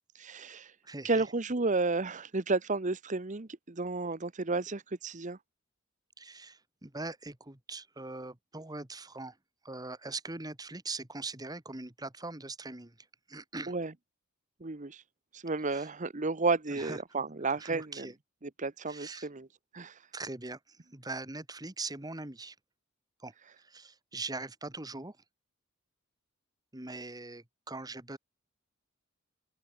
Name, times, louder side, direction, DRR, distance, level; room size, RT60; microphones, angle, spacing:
voice 1, 0.1-0.8 1.0-5.4 13.7-13.9 14.6-15.0 15.3-18.1 18.4-19.5 19.7-20.1 23.4-23.5, right 3 dB, 35° right, 1.0 m, -32 dB
voice 2, 0.8-1.2 6.2-9.4 9.6-13.7 15.7-15.9 16.7-17.0 17.6-18.1 18.9-19.3 20.1-22.6 23.2-25.2 26.7-28.2, right 3 dB, 20° right, 1.8 m, -41 dB
open air
head